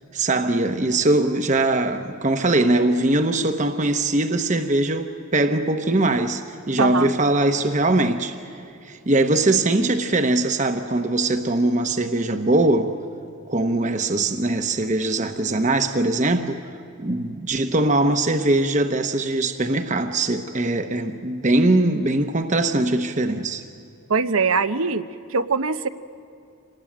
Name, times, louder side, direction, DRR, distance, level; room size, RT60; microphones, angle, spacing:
voice 1, 0.1-8.4 8.8-12.9 13.5-16.6 17.0-23.6, right 2 dB, 35° right, 0.9 m, -21 dB
voice 2, 6.8-7.1 24.1-25.0 25.3-25.9, right 4 dB, 80° right, 0.9 m, -22 dB
26.5 x 19.5 x 8.8 m
head